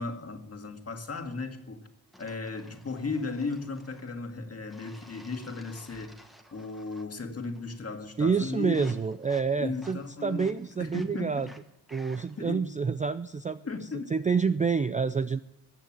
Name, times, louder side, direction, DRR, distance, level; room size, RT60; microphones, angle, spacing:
voice 1, 0.0-1.8 2.2-6.2 6.5-8.9 9.6-10.5 10.8-11.5 12.4-12.7 13.6-14.1, left 3 dB, 35° left, 2.0 m, -36 dB
sound 1, 2.1-4.2 4.7-7.2 7.4-7.9 8.2-12.5, equal, ahead, 1.3 m, -55 dB
voice 2, 8.2-11.5 11.9-13.6 14.1-15.4, right 5 dB, 20° right, 0.4 m, -28 dB
15.0 x 8.2 x 7.3 m
cardioid pair, 75°, 41 cm